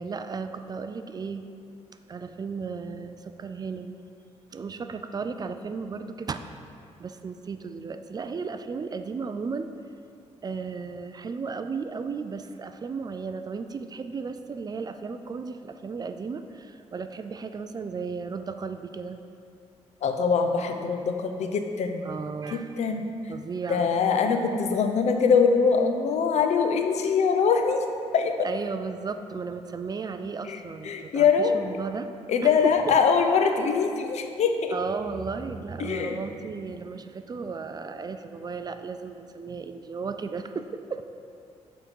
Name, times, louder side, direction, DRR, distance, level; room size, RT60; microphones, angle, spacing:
voice 1, 0.0-1.5 2.1-3.9 4.5-6.4 7.0-9.7 10.4-19.2 22.0-22.8 23.3-23.9 28.4-32.1 32.4-33.0 34.7-41.0, right 5 dB, 35° right, 9 dB, 0.3 m, -35 dB
voice 2, 20.0-22.1 22.5-23.1 23.7-27.8 28.1-28.3 30.5-30.6 30.8-31.5 32.3-34.8 35.8-36.2, left 5 dB, 70° left, 5 dB, 0.6 m, -23 dB
7.1 x 3.7 x 5.3 m, 2.5 s
cardioid pair, 90°, 12 cm